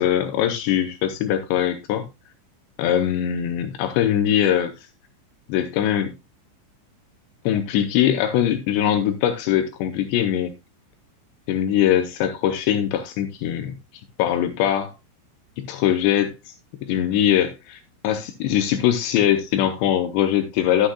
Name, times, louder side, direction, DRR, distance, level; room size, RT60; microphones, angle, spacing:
voice 1, 0.0-2.1 2.8-4.7 5.5-6.1 7.4-10.5 11.5-13.8 14.2-14.9 15.6-16.5 16.8-20.9, left 10 dB, 85° left, 2.6 m, -22 dB
11.5 x 9.0 x 2.3 m
omnidirectional pair, 5.9 m